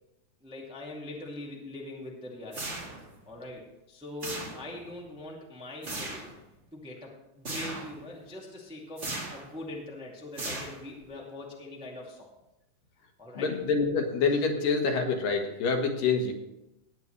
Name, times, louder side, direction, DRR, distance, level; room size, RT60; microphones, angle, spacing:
voice 1, 0.4-2.6 3.2-6.3 6.7-12.3 13.2-13.5, left 2 dB, 5° right, -2 dB, 1.3 m, -42 dB
sound 1, 2.5-3.2 4.2-4.9 5.8-6.3 7.5-8.0 9.0-9.5 10.4-11.0, right 2 dB, 25° right, 1.9 m, -37 dB
voice 2, 13.3-16.3, left 4 dB, 85° left, 3 dB, 3.2 m, -26 dB
17.5 x 9.6 x 3.3 m, 0.90 s
omnidirectional pair, 3.8 m